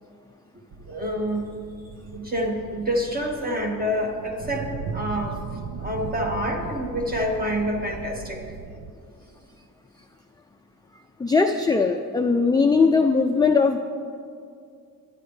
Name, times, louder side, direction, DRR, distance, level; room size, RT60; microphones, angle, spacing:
sound 1, 0.7-8.9, right 5 dB, 70° right, 0.8 m, -38 dB
voice 1, 0.9-1.5 2.1-5.4 5.7-8.6, equal, 25° right, 0 dB, 1.8 m, -27 dB
voice 2, 11.2-13.8, left 4 dB, 10° left, 4 dB, 0.4 m, -19 dB
24.0 x 10.5 x 3.3 m, 2.4 s
wide cardioid pair, 145°, 36 cm